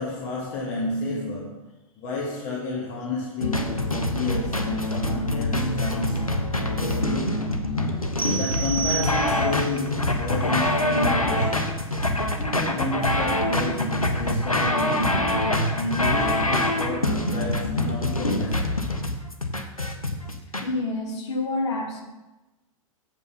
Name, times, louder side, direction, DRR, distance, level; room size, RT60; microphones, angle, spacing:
voice 1, 0.0-1.6 2.0-6.4 6.7-7.5 8.3-11.7 12.4-18.8, left 2 dB, 40° left, -3 dB, 1.5 m, -31 dB
sound 1, 3.4-20.6, left 1 dB, 90° left, 0.9 m, -25 dB
sound 2, 8.2-9.7, right 7 dB, 85° right, 0.7 m, -30 dB
voice 2, 20.6-22.0, left 2 dB, 55° left, 0 dB, 2.0 m, -28 dB
7.4 x 5.5 x 5.5 m, 1.1 s
figure-of-eight pair, 100°, 18 cm